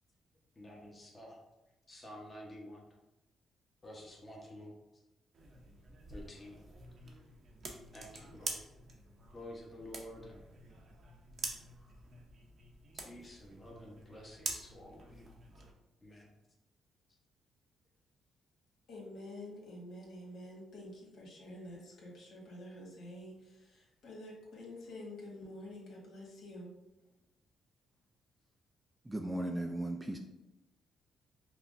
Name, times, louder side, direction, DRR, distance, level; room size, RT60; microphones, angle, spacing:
voice 1, 0.5-1.4 1.9-2.9 3.8-5.0 6.1-6.7 7.0-7.2 7.9-8.7 9.3-10.5 13.0-15.3 16.0-16.3, left 1 dB, 25° left, -2 dB, 0.9 m, -50 dB
sound 1, 5.3-15.7, right 3 dB, 50° right, 0.6 m, -47 dB
voice 2, 18.9-26.7, left 1 dB, 70° left, -3 dB, 1.4 m, -48 dB
voice 3, 29.0-30.2, right 1 dB, 15° right, 3 dB, 0.3 m, -36 dB
5.6 x 2.0 x 2.5 m, 0.97 s
cardioid pair, 90°, 0 cm